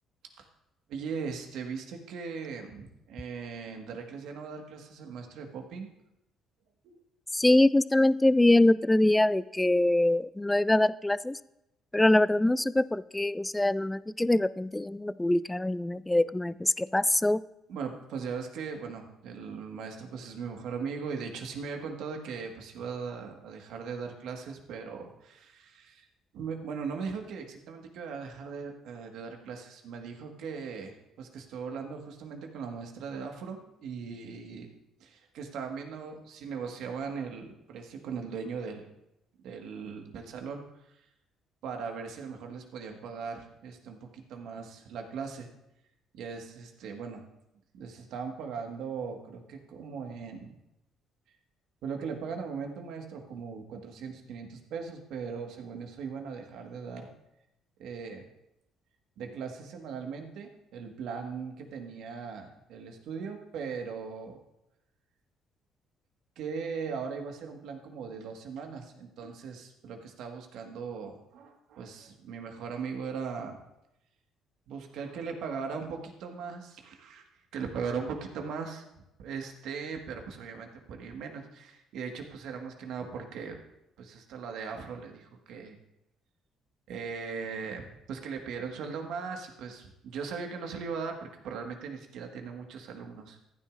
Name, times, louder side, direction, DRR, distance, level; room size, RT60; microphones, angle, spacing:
voice 1, 0.9-5.9 6.8-7.0 17.7-26.1 26.3-34.7 35.0-38.9 39.4-41.0 41.6-45.5 46.1-47.2 47.7-50.6 51.8-57.1 57.8-58.3 59.2-64.4 66.3-73.6 74.7-77.2 77.5-78.8 79.2-83.6 84.0-85.8 86.9-93.4, right 5 dB, 70° right, 3 dB, 1.6 m, -39 dB
voice 2, 7.3-11.4 11.9-17.4, left 1 dB, 10° left, 17 dB, 0.4 m, -24 dB
14.5 x 10.0 x 2.5 m, 0.86 s
supercardioid pair, 65°, 0 cm